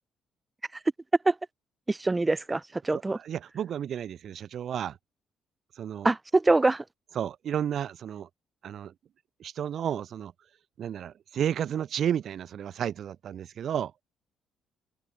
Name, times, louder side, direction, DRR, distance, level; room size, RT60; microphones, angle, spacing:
voice 1, 1.9-3.2 6.0-6.8, right 2 dB, 15° right, 0.6 m, -24 dB
voice 2, 2.9-5.0 5.8-6.1 7.1-8.3 8.6-8.9 9.4-10.3 10.8-13.9, right 9 dB, 50° right, 1.5 m, -32 dB
open air
cardioid pair, 165°, 0 cm